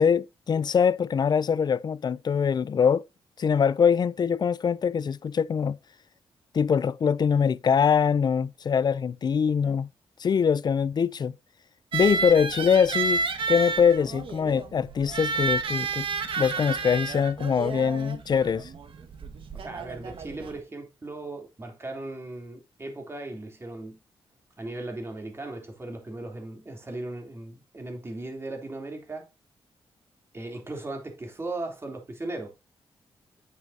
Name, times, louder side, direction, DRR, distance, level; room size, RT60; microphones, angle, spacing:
voice 1, 0.0-3.0 3.4-5.8 6.5-9.9 10.2-11.3 11.9-16.1 16.4-18.7, left 7 dB, 45° left, 0.5 m, -23 dB
sound 1, 11.9-20.6, right 4 dB, 60° right, 1.6 m, -31 dB
voice 2, 19.5-24.0 24.6-29.3 30.3-32.5, right 2 dB, 25° right, 3.4 m, -37 dB
9.3 x 7.6 x 2.8 m
cardioid pair, 105°, 10 cm